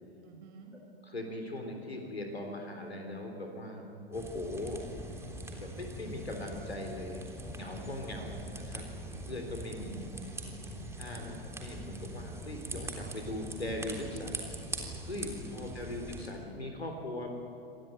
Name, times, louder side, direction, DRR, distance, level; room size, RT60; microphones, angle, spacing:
voice 1, 0.2-0.7 9.7-10.6 11.0-11.4 15.5-15.9, right 5 dB, 40° right, 3 dB, 6.2 m, -53 dB
voice 2, 1.0-4.8 5.6-8.9 9.2-10.0 11.0-14.5 15.0-17.3, left 1 dB, 85° left, 3 dB, 3.7 m, -40 dB
sound 1, 4.1-16.3, right 1 dB, 10° right, 3.5 m, -42 dB
26.5 x 18.5 x 9.3 m, 2.7 s
figure-of-eight pair, 105°, 31 cm